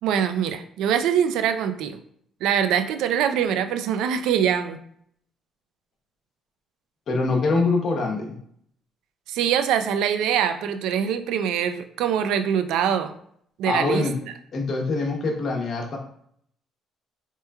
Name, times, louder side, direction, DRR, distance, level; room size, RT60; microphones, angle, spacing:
voice 1, 0.0-2.0 2.4-4.8 9.3-13.1 13.6-14.0, right 8 dB, 80° right, 9 dB, 0.3 m, -23 dB
voice 2, 7.1-8.4 13.6-14.2 14.5-16.0, left 3 dB, 55° left, 2 dB, 0.8 m, -24 dB
3.4 x 3.0 x 2.2 m, 0.66 s
cardioid pair, 85°, 0 cm